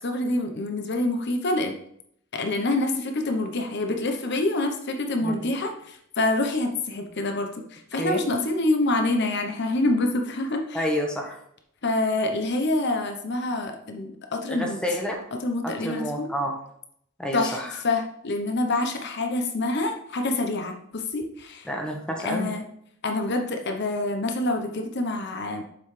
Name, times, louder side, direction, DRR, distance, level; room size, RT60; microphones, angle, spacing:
voice 1, 0.0-1.7 2.3-10.8 11.8-14.8 15.4-16.3 17.3-21.7 22.2-22.6 23.0-25.6, left 2 dB, 55° left, 4 dB, 0.9 m, -26 dB
voice 2, 10.7-11.4 14.5-15.2 15.6-16.6 17.2-17.7 21.6-22.5, equal, 5° left, 0 dB, 1.1 m, -29 dB
7.4 x 5.4 x 3.3 m, 0.69 s
head